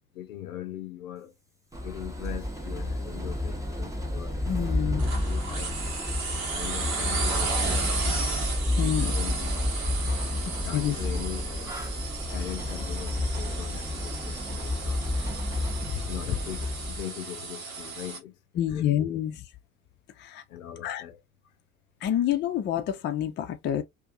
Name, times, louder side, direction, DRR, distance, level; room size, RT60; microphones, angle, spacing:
voice 1, 0.1-1.3 1.8-4.4 5.0-5.8 6.5-8.2 8.8-9.6 10.4-11.8 12.3-15.3 16.1-19.2 20.5-21.2, left 12 dB, 70° left, 0.7 m, -41 dB
sound 1, 1.7-17.0, left 1 dB, 10° right, 0.7 m, -30 dB
voice 2, 4.4-5.0 8.8-9.2 10.7-10.9 15.9-16.0 18.6-19.3 20.2-20.4 20.8-21.0 22.0-23.8, left 11 dB, 25° left, 0.4 m, -27 dB
sound 2, 5.0-18.2, right 4 dB, 65° right, 1.1 m, -34 dB
2.5 x 2.4 x 2.4 m
figure-of-eight pair, 65°, 43 cm